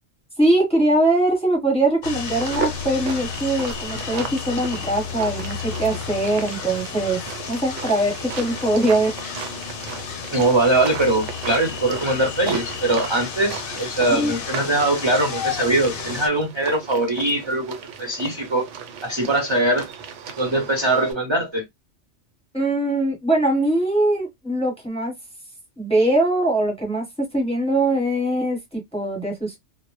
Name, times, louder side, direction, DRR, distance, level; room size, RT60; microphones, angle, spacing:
voice 1, 0.4-7.2 7.5-9.1 14.1-14.3 22.5-25.1 25.8-29.6, right 1 dB, 5° left, 0.9 m, -22 dB
sound 1, 2.0-16.3, left 6 dB, 60° left, 0.6 m, -32 dB
sound 2, 2.3-21.1, right 7 dB, 75° right, 0.9 m, -36 dB
voice 2, 10.3-18.7 19.0-19.9 20.4-21.6, right 2 dB, 30° right, 0.6 m, -21 dB
2.0 x 2.0 x 3.0 m
omnidirectional pair, 1.2 m